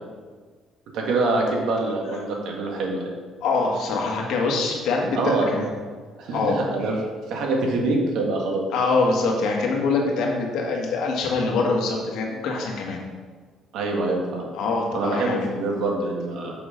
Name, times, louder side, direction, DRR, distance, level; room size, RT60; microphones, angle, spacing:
voice 1, 0.9-3.1 5.1-5.6 6.2-7.0 7.3-8.6 13.7-14.4 14.9-16.5, right 2 dB, 75° right, 0 dB, 1.8 m, -25 dB
voice 2, 3.4-5.7 6.3-6.6 8.7-13.0 14.5-15.5, left 3 dB, 75° left, 0 dB, 1.6 m, -24 dB
6.8 x 6.4 x 5.2 m, 1.5 s
cardioid pair, 135°, 0 cm